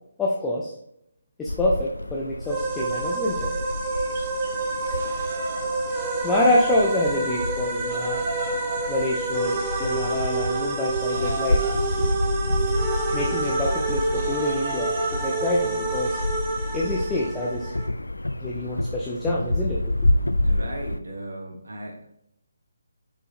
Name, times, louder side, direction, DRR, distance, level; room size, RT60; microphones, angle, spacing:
voice 1, 0.2-0.7 1.4-3.5 6.2-8.2 8.9-12.1 13.1-16.2 16.7-17.7 18.4-19.9, left 1 dB, 10° left, -4 dB, 0.7 m, -26 dB
sound 1, 1.5-21.0, left 1 dB, 90° left, 0.4 m, -29 dB
sound 2, 2.5-17.9, right 3 dB, 15° right, 1.0 m, -28 dB
sound 3, 4.1-6.7 7.0-17.3, right 3 dB, 45° right, 1.2 m, -40 dB
voice 2, 20.4-22.1, right 1 dB, 75° right, 0 dB, 1.6 m, -36 dB
6.1 x 5.2 x 3.6 m, 0.77 s
figure-of-eight pair, 145°, 0 cm